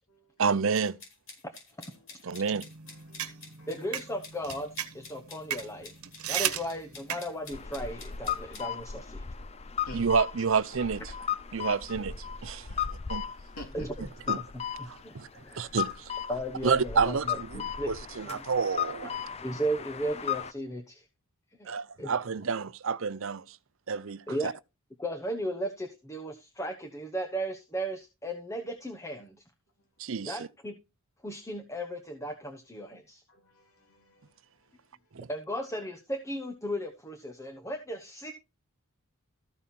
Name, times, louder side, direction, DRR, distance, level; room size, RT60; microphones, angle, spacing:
voice 1, 0.4-1.0 2.2-2.6 9.9-11.0 11.5-12.1 12.4-12.7 13.1-13.2 14.3-14.4 14.9-15.3 15.5-16.1 16.6-17.5 17.9-19.2 21.7-23.6 23.9-24.5 30.0-30.4 35.1-35.3, right 5 dB, 60° right, 0.6 m, -29 dB
sound 1, 0.7-8.6, left 4 dB, 55° left, 5.8 m, -49 dB
sound 2, 2.5-7.6, right 10 dB, 80° right, 1.3 m, -36 dB
voice 2, 2.9-3.7 9.8-10.1 13.5-13.9 17.7-17.8 33.3-34.3, equal, 80° left, 2.8 m, -49 dB
voice 3, 3.7-5.9 6.3-9.3 12.7-12.8 13.7-14.4 14.8-15.2 15.4-15.7 16.3-17.9 18.2-18.4 19.0-19.1 19.4-21.1 21.6-22.1 24.3-24.5 25.0-29.4 30.3-30.8 31.2-33.2 35.3-38.3, equal, 15° left, 0.9 m, -36 dB
sound 3, 7.5-20.5, left 8 dB, 30° left, 0.5 m, -36 dB
14.0 x 5.5 x 4.3 m
head